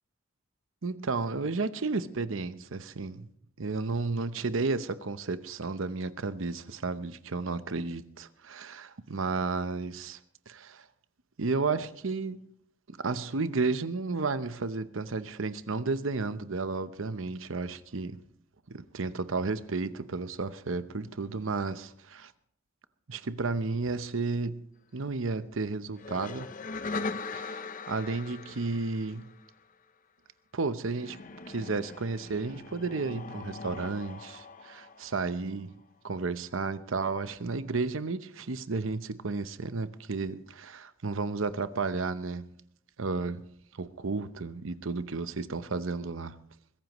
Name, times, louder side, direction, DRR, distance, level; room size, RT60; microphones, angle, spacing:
voice 1, 0.8-3.3 3.6-10.2 10.5-10.9 11.4-12.5 12.9-18.2 18.7-22.3 23.1-24.6 24.9-26.5 27.3-29.3 30.5-31.2 31.5-35.7 36.0-42.6 43.0-43.5 43.8-46.4, right 3 dB, 75° right, 0.8 m, -32 dB
sound 1, 26.0-29.6 30.9-35.6, left 3 dB, 40° left, 0.7 m, -40 dB
22.5 x 15.5 x 3.1 m
head